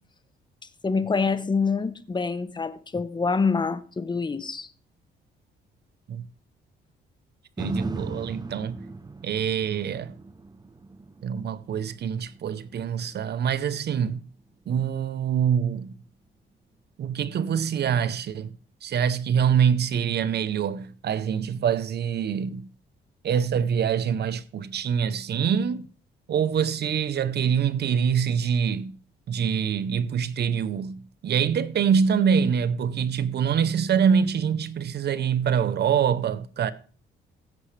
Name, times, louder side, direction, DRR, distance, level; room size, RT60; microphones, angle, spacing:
voice 1, 0.8-4.7, left 4 dB, 20° left, 1.0 m, -26 dB
sound 1, 7.6-15.7 16.2-16.3, right 3 dB, 20° right, 0.9 m, -38 dB
voice 2, 7.6-8.8 9.2-10.1 11.2-14.2 14.7-15.9 17.0-18.5 18.8-22.7 23.2-25.9 26.3-29.0 29.3-36.7, right 7 dB, 55° right, 0.7 m, -25 dB
16.0 x 8.6 x 3.3 m
cardioid pair, 90°, 20 cm